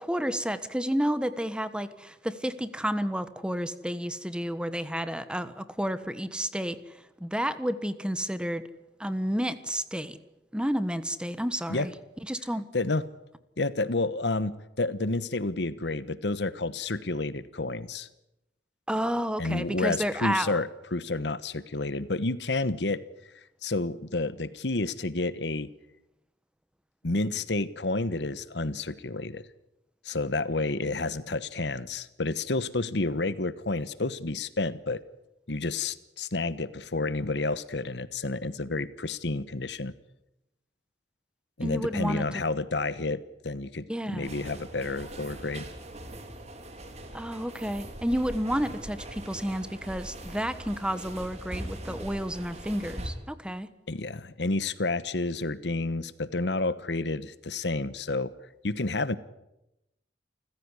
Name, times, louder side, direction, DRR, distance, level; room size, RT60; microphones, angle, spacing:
voice 1, 0.0-6.8 7.2-8.6 9.0-10.2 10.5-11.9 12.3-12.6 18.9-20.6 41.6-42.2 43.9-44.3 47.1-53.7, equal, 5° right, 13 dB, 1.3 m, -30 dB
voice 2, 12.7-13.0 13.6-18.1 19.4-23.0 23.6-25.7 27.0-29.4 30.0-35.0 35.5-39.9 41.6-45.7 53.9-58.3 58.6-59.1, left 2 dB, 70° left, 15 dB, 1.2 m, -30 dB
sound 1, 44.2-53.1, right 1 dB, 40° right, 3.6 m, -41 dB
28.5 x 15.5 x 9.8 m, 0.88 s
head